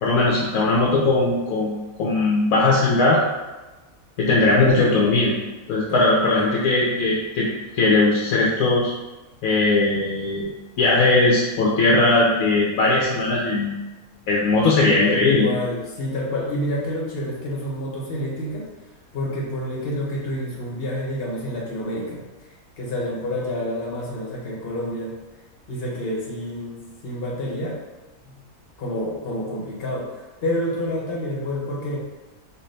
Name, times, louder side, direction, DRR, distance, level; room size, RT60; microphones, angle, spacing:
voice 1, 0.0-3.2 4.2-5.4 5.7-7.5 7.7-8.9 9.4-10.5 10.8-13.7 14.3-15.5, left 2 dB, 80° left, -3 dB, 1.1 m, -19 dB
voice 2, 5.9-6.5 15.0-18.7 19.1-22.5 22.8-25.1 25.7-27.8 28.2-28.4 28.8-32.0, left 1 dB, 50° left, -3 dB, 1.0 m, -28 dB
4.1 x 2.6 x 3.2 m, 1.1 s
omnidirectional pair, 1.5 m